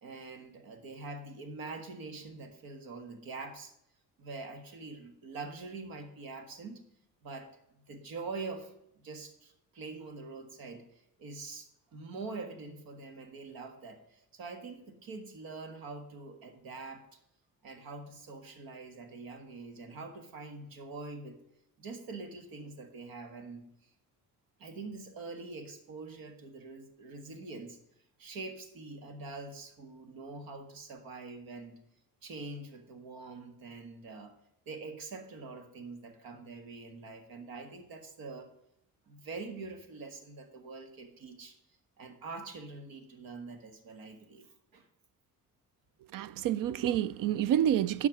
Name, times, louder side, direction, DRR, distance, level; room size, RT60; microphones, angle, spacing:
voice 1, 0.0-3.7 4.2-6.8 7.2-7.5 7.9-8.7 9.0-17.0 17.6-21.4 21.8-23.6 24.6-27.8 28.2-31.8 32.2-34.3 34.7-38.5 39.1-41.6 42.0-44.9, right 3 dB, 80° right, 1.7 m, -44 dB
voice 2, 46.1-48.1, right 10 dB, 65° right, 0.5 m, -28 dB
12.0 x 4.8 x 6.3 m
cardioid pair, 160°, 35 cm